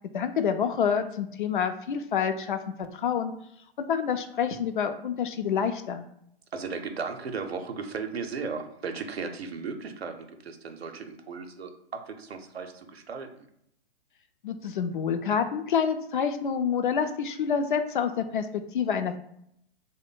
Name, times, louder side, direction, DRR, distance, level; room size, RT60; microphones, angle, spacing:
voice 1, 0.1-3.3 3.8-6.0 14.4-19.2, left 7 dB, 55° left, 8 dB, 0.4 m, -28 dB
voice 2, 6.5-13.5, right 5 dB, 75° right, 6 dB, 0.6 m, -36 dB
3.1 x 2.1 x 3.9 m, 0.74 s
figure-of-eight pair, 120°, 31 cm